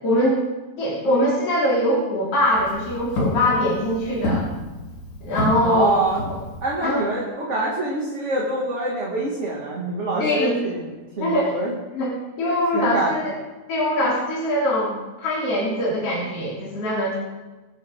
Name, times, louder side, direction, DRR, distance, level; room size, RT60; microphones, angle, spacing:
voice 1, 0.0-0.5 0.8-4.5 5.2-6.0 6.8-7.0 10.2-10.6 11.2-11.5 11.9-12.1 12.4-13.3 13.7-17.2, left 1 dB, 55° left, -6 dB, 3.9 m, -22 dB
Walk footsteps, 2.3-6.9, left 1 dB, 80° left, 5.1 m, -29 dB
voice 2, 5.6-6.2 6.6-11.7 12.7-13.1, right 2 dB, 25° right, -5 dB, 2.4 m, -25 dB
22.0 x 10.5 x 3.8 m, 1.2 s
omnidirectional pair, 3.4 m